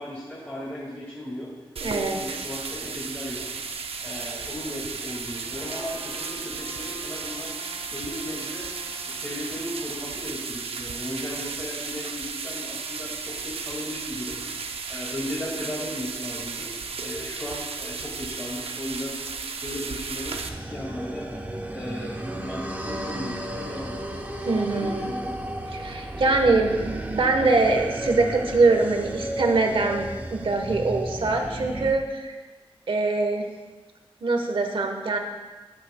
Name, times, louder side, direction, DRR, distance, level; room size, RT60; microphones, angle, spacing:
voice 1, 0.0-1.5 1.8-3.5 4.0-7.5 7.9-8.7 9.1-14.4 14.9-16.7 17.0-19.2 19.6-20.4 20.7-21.3 21.7-24.5 24.7-25.4, left 1 dB, 20° left, -8 dB, 1.9 m, -36 dB
voice 2, 1.8-2.2 24.4-25.1 25.7-32.3 32.9-33.4 34.2-35.2, right 3 dB, 60° right, 4 dB, 1.1 m, -23 dB
sound 1, 1.8-20.5, right 5 dB, 80° right, 0.6 m, -34 dB
Trumpet, 5.4-10.0, left 1 dB, 75° left, 2.1 m, -48 dB
sound 2, 20.3-31.9, right 1 dB, 15° right, 0.8 m, -33 dB
13.0 x 9.6 x 2.2 m, 1.3 s
wide cardioid pair, 135°, 10 cm